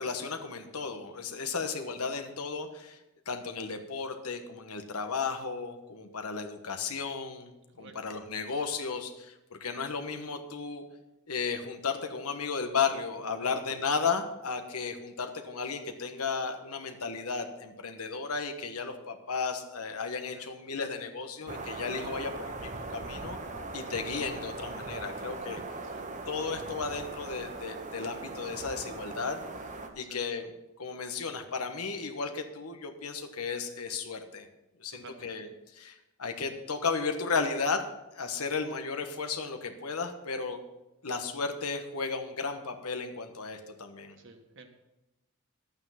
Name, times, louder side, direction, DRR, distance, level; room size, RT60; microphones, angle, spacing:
voice 1, 0.0-3.0 3.3-7.5 7.8-10.8 11.3-23.4 23.7-25.6 26.3-29.4 29.9-34.5 34.8-37.8 38.1-40.6 41.0-44.2, left 5 dB, 90° left, 6 dB, 1.3 m, -34 dB
sound 1, 21.5-29.9, right 3 dB, 35° right, 1.1 m, -40 dB
voice 2, 34.9-35.3 44.2-44.7, right 3 dB, 55° right, 5 dB, 1.5 m, -50 dB
12.0 x 8.8 x 5.8 m, 0.98 s
head